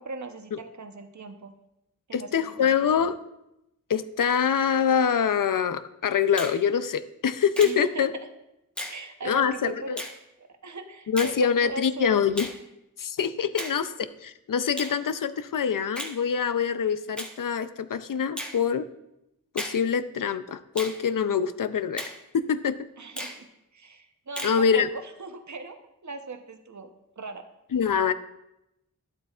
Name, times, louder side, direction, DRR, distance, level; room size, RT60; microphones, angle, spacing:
voice 1, 0.0-1.5 2.1-2.9 7.6-8.3 8.9-9.9 10.4-12.4 23.0-23.5 23.7-27.4, right 3 dB, 50° right, 7 dB, 0.8 m, -39 dB
voice 2, 2.1-3.2 3.9-8.1 9.2-10.0 11.1-12.5 13.0-13.9 14.2-18.9 19.5-22.0 22.5-22.7 24.4-24.9 27.7-28.1, left 7 dB, 65° left, 13 dB, 0.5 m, -25 dB
Finger snapping, 6.4-6.6 7.5-7.8 8.8-9.0 10.0-10.2 11.2-11.4 12.4-12.6 13.6-13.8 14.8-15.0 15.9-16.2 17.2-17.3 18.4-18.6 19.6-19.8 20.8-21.0 22.0-22.2 23.2-23.4 24.4-24.6, equal, 5° left, 1.1 m, -35 dB
11.5 x 7.8 x 2.4 m, 0.88 s
wide cardioid pair, 55°, 36 cm